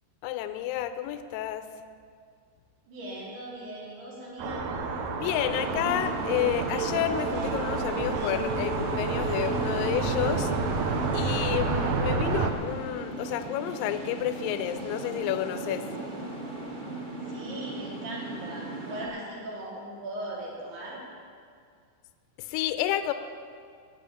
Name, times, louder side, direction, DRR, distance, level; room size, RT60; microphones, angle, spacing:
voice 1, 0.2-1.7 5.2-10.5 11.1-15.9 19.1-19.2 22.4-23.1, left 11 dB, 80° left, 10 dB, 2.2 m, -30 dB
voice 2, 2.9-4.7 17.2-21.0, right 1 dB, 90° right, -6 dB, 5.6 m, -39 dB
sound 1, 4.4-12.5, right 4 dB, 75° right, 1.7 m, -29 dB
sound 2, 5.5-19.1, right 2 dB, 25° right, 1.0 m, -36 dB
18.0 x 6.2 x 9.1 m, 2.2 s
omnidirectional pair, 4.5 m